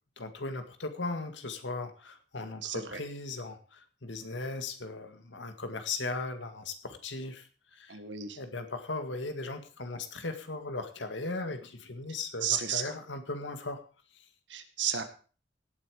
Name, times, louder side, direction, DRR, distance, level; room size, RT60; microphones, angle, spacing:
voice 1, 0.2-8.0 8.4-13.8 14.1-14.3, left 3 dB, 90° left, 7 dB, 2.1 m, -38 dB
voice 2, 2.6-3.0 7.9-8.4 12.4-12.9 14.5-15.0, right 8 dB, 80° right, 8 dB, 2.0 m, -32 dB
17.5 x 8.6 x 5.0 m, 0.38 s
head